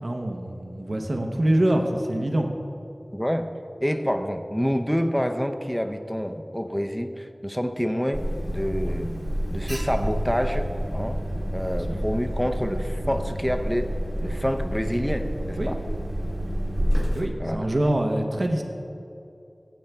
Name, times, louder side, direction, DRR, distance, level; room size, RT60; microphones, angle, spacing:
voice 1, 0.0-2.5 11.7-12.0 15.6-15.7 17.1-18.6, right 1 dB, 60° right, 3 dB, 0.8 m, -25 dB
voice 2, 3.1-3.5 3.8-9.2 9.5-11.2 11.5-13.9 14.2-15.8 17.4-17.7, equal, 5° left, 6 dB, 0.5 m, -27 dB
Alarm, 8.1-17.2, equal, 40° right, 1.3 m, -28 dB
14.5 x 7.8 x 3.4 m, 2.7 s
wide cardioid pair, 50°, 0 cm